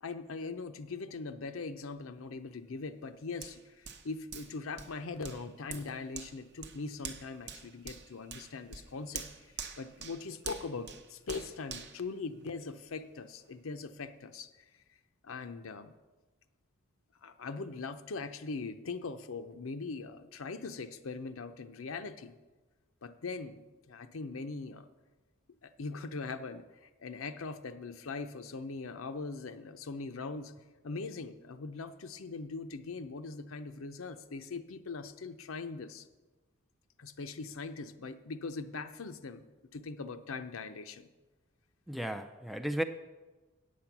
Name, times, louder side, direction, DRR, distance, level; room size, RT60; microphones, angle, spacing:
voice 1, 0.0-9.3 9.8-14.5 15.2-15.9 17.2-22.4 23.0-24.9 25.6-30.5 30.8-36.1 37.0-39.4 39.7-41.1, left 4 dB, 75° left, 0.6 m, -41 dB
Hands, 3.4-12.9 13.4-13.5, right 6 dB, 55° right, 0.8 m, -47 dB
voice 2, 41.9-42.8, right 1 dB, ahead, 0.3 m, -34 dB
8.5 x 8.4 x 5.9 m
head